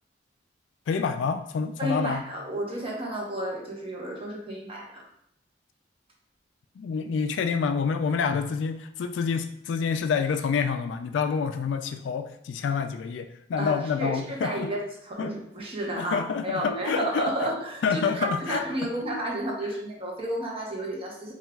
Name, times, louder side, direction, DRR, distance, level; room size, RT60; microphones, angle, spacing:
voice 1, 0.9-2.2 6.8-14.7 15.2-15.3 16.0-17.3 17.8-18.6, left 6 dB, 85° left, 7 dB, 0.3 m, -27 dB
voice 2, 1.8-5.0 13.6-21.3, right 1 dB, 30° right, -1 dB, 0.9 m, -32 dB
7.0 x 2.4 x 2.3 m, 0.72 s
head